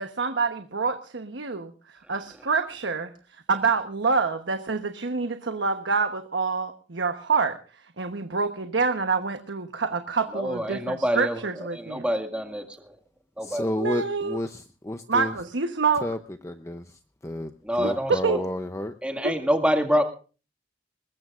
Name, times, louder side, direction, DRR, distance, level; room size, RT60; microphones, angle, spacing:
voice 1, 0.0-7.6 8.0-12.0 13.8-14.4 15.1-16.1 17.8-17.9 18.2-18.4 19.2-19.3, right 4 dB, 85° right, 7 dB, 1.1 m, -27 dB
voice 2, 10.3-11.4 11.7-12.9 13.4-13.6 17.6-18.4 19.0-20.0, equal, 5° right, 4 dB, 2.0 m, -26 dB
voice 3, 13.4-15.4 16.0-16.2 16.4-17.5 17.8-18.9, left 1 dB, 15° left, 8 dB, 0.7 m, -31 dB
21.5 x 20.0 x 2.5 m, 0.36 s
head